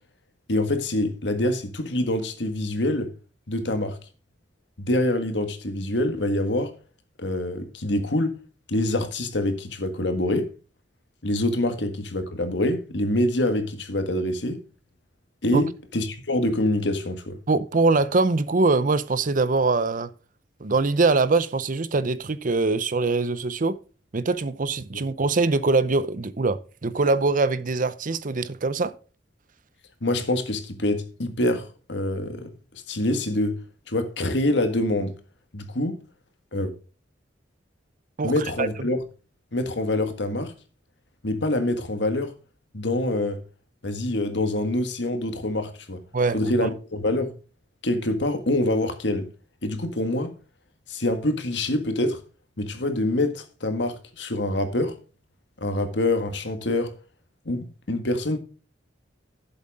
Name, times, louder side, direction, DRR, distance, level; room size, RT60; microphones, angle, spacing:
voice 1, 0.5-3.1 3.5-4.0 4.8-6.7 7.2-8.4 8.7-10.5 11.2-14.6 15.4-17.4 24.9-25.0 30.0-32.5 32.9-33.6 33.9-35.2 35.5-36.0 36.5-36.7 38.2-39.0 39.5-40.5 41.2-42.3 42.7-43.4 43.8-46.0 46.3-47.3 47.8-49.3 49.6-50.3 50.9-52.2 52.6-55.0 55.6-56.9 57.5-58.4, left 1 dB, 70° left, 1.7 m, -25 dB
voice 2, 17.5-20.1 20.6-23.8 24.1-28.9 38.2-38.7 46.1-46.7, right 3 dB, 50° right, 0.7 m, -23 dB
11.5 x 7.9 x 3.6 m
head